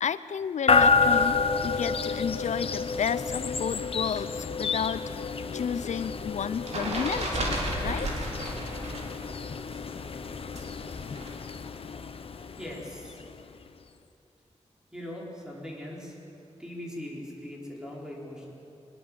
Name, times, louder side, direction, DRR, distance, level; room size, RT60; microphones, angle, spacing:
voice 1, 0.0-5.1 5.5-8.1, left 7 dB, 90° left, 15 dB, 0.5 m, -32 dB
sound 1, 0.7-13.7, left 4 dB, 55° left, 0.9 m, -29 dB
sound 2, 5.8-9.1 9.4-11.3, right 1 dB, 70° right, 4.3 m, -33 dB
voice 2, 12.6-13.2 14.9-16.2 16.6-18.5, left 1 dB, 5° right, -3 dB, 4.5 m, -40 dB
23.5 x 20.5 x 7.6 m, 2.7 s
wide cardioid pair, 170°, 12 cm